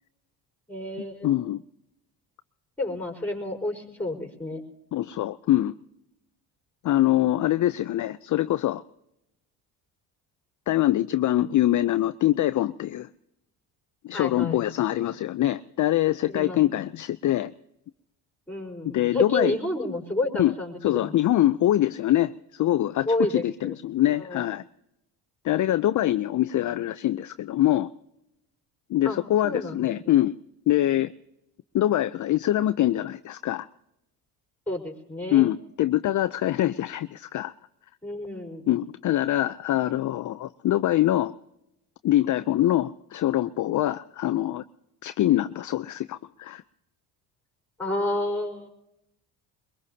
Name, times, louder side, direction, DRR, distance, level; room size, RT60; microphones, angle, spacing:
voice 1, 0.7-1.3 2.8-4.6 14.1-14.6 16.3-16.6 18.5-21.1 23.0-23.7 24.1-24.4 29.0-29.8 34.7-35.5 38.0-38.6 47.8-48.7, left 2 dB, 5° left, 2 dB, 4.8 m, -30 dB
voice 2, 1.2-1.6 4.9-5.7 6.8-8.8 10.7-13.1 14.0-17.5 18.8-19.6 20.4-20.5 20.8-24.6 25.4-27.9 28.9-30.4 30.7-31.1 31.7-33.7 35.3-37.5 38.7-41.3 42.0-44.6 45.0-46.6, left 13 dB, 45° left, 12 dB, 0.5 m, -24 dB
22.0 x 22.0 x 2.8 m, 0.85 s
supercardioid pair, 80°, 44 cm